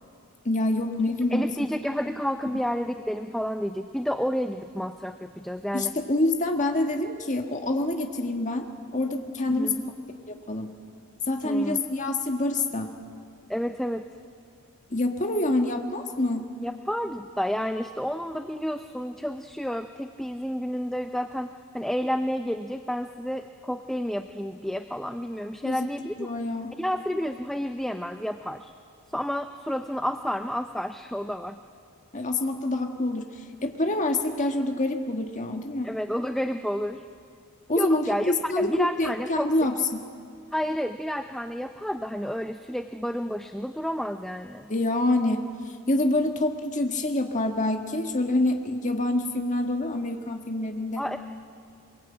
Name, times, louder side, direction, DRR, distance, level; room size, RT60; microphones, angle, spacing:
voice 1, 0.5-1.4 5.7-8.7 8.9-9.7 10.3-10.7 11.3-12.9 14.9-16.5 25.6-25.8 26.2-26.8 32.1-33.3 33.6-35.9 37.7-40.0 44.7-45.4 45.9-51.0, left 2 dB, 35° left, 4 dB, 1.7 m, -26 dB
voice 2, 1.3-5.9 9.5-9.9 11.4-11.8 13.5-14.0 16.6-26.3 26.7-28.7 29.1-31.6 35.8-37.0 37.8-39.5 40.5-44.7 51.0-51.2, equal, ahead, 7 dB, 0.5 m, -30 dB
23.0 x 22.0 x 8.8 m, 2.2 s
head